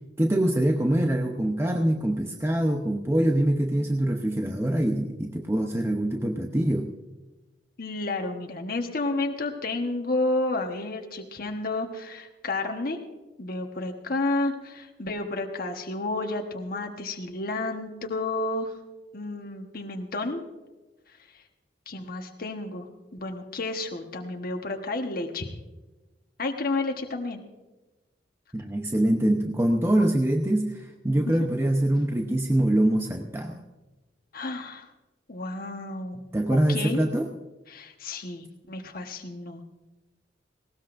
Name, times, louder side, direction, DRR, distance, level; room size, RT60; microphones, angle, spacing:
voice 1, 0.2-6.9 28.5-33.6 36.3-37.3, right 1 dB, 15° right, 3 dB, 0.8 m, -24 dB
voice 2, 7.8-13.0 13.4-18.7 19.1-20.4 21.9-22.9 23.1-25.5 26.4-27.4 31.2-31.3 34.3-34.9 35.3-36.2 36.5-37.0 37.7-39.6, left 2 dB, 55° left, 3 dB, 1.2 m, -31 dB
19.5 x 18.0 x 2.6 m, 1.1 s
head